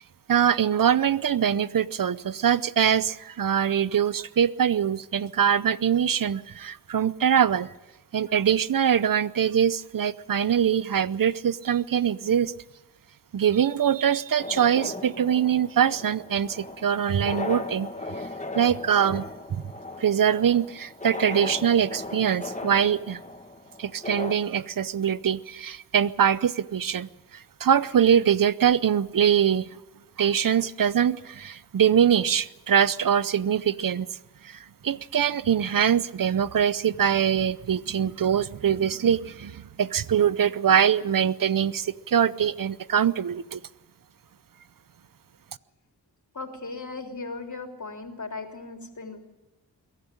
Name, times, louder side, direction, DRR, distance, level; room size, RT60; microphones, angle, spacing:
voice 1, 0.3-7.7 8.1-12.5 13.3-17.9 18.5-19.6 20.0-23.2 23.8-29.7 30.2-34.2 34.4-43.6, right 8 dB, 60° right, 17 dB, 0.7 m, -23 dB
sound 1, 14.4-24.4, left 2 dB, 20° left, 1.8 m, -37 dB
voice 2, 46.3-49.2, left 3 dB, 50° left, 3 dB, 3.4 m, -37 dB
22.5 x 12.5 x 10.0 m, 1.1 s
cardioid pair, 55°, 39 cm